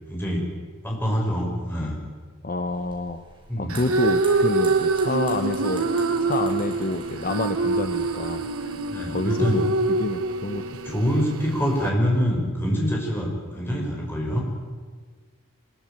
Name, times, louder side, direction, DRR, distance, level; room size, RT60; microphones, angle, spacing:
voice 1, 0.1-0.4 0.8-2.0 3.5-3.8 8.9-9.6 10.8-14.4, equal, 10° left, -2 dB, 6.1 m, -25 dB
voice 2, 2.4-3.2 3.6-5.9 6.2-8.8 9.1-11.0, left 2 dB, 40° left, 8 dB, 1.0 m, -29 dB
sound 1, 2.6-8.4, right 2 dB, 25° right, 5.8 m, -47 dB
sound 2, 3.7-11.9, right 3 dB, 90° right, 1.6 m, -25 dB
24.5 x 21.5 x 9.2 m, 1.5 s
head